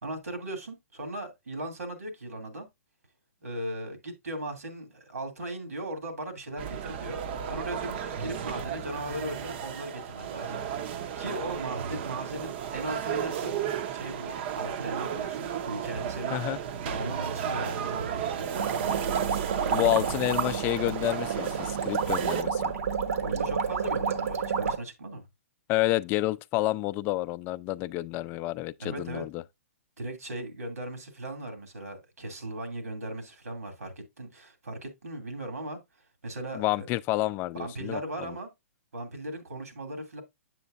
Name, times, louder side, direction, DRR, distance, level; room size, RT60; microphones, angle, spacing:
voice 1, 0.0-2.7 3.4-10.8 11.2-13.6 13.9-16.4 16.8-18.7 23.2-25.2 28.8-29.2 30.0-35.8 36.2-36.9 37.5-38.5 38.9-40.2, right 1 dB, 90° right, 2.4 m, -38 dB
sound 1, 6.6-22.4, right 8 dB, 45° right, 0.7 m, -34 dB
sound 2, 18.6-24.8, right 6 dB, 70° right, 1.1 m, -30 dB
voice 2, 19.7-22.7 25.7-29.4 36.6-38.3, left 16 dB, 25° left, 0.3 m, -29 dB
7.7 x 7.0 x 2.5 m
hypercardioid pair, 140°, 8 cm